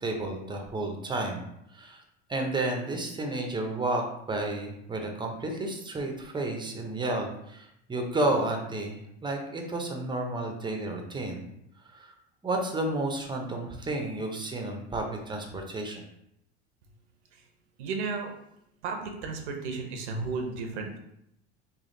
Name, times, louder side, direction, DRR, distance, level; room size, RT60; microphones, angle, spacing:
voice 1, 0.0-1.4 1.7-2.0 2.3-11.4 11.9-12.1 12.4-16.0, right 2 dB, 15° right, 2 dB, 0.6 m, -31 dB
voice 2, 17.8-18.3 18.8-21.0, right 4 dB, 85° right, 3 dB, 0.8 m, -33 dB
3.4 x 2.3 x 3.8 m, 0.78 s
supercardioid pair, 105°, 34 cm